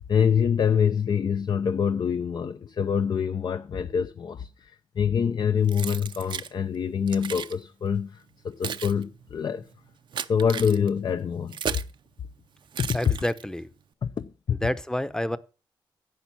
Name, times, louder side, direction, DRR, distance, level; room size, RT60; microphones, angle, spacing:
voice 1, 0.1-9.7 10.3-11.6 12.8-13.0 14.0-14.6, left 7 dB, 60° left, 0.6 m, -25 dB
Keys jangling, 5.7-6.5 7.1-7.6 8.3-12.0 12.7-13.6, right 8 dB, 70° right, 0.6 m, -35 dB
voice 2, 12.9-13.7 14.5-15.4, left 1 dB, 10° left, 0.8 m, -29 dB
10.5 x 7.0 x 7.2 m
cardioid pair, 100°, 8 cm